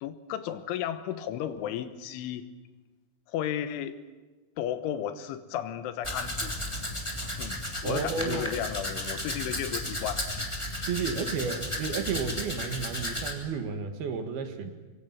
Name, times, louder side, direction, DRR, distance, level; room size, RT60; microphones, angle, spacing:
voice 1, 0.0-2.5 3.3-4.0 4.6-6.5 7.4-7.6 7.8-10.5, left 10 dB, 90° left, 12 dB, 3.7 m, -34 dB
Domestic sounds home sounds, 6.0-13.3, left 1 dB, 10° left, 2.4 m, -34 dB
voice 2, 7.8-8.5 10.9-14.8, right 5 dB, 65° right, 8 dB, 3.2 m, -32 dB
24.5 x 24.0 x 7.5 m, 1.3 s
omnidirectional pair, 5.4 m